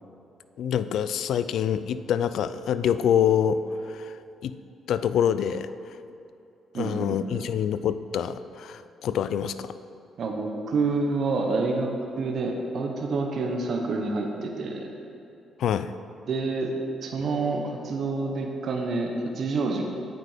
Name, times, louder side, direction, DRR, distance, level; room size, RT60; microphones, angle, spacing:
voice 1, 0.6-4.2 4.4-4.6 4.9-5.7 6.7-9.7 15.6-15.9, left 8 dB, 75° left, 13 dB, 0.4 m, -26 dB
voice 2, 6.7-7.4 10.2-11.9 12.2-14.9 16.3-16.7 17.0-19.8, right 3 dB, 60° right, 1 dB, 1.2 m, -28 dB
9.0 x 8.4 x 5.1 m, 2.8 s
cardioid pair, 90°, 0 cm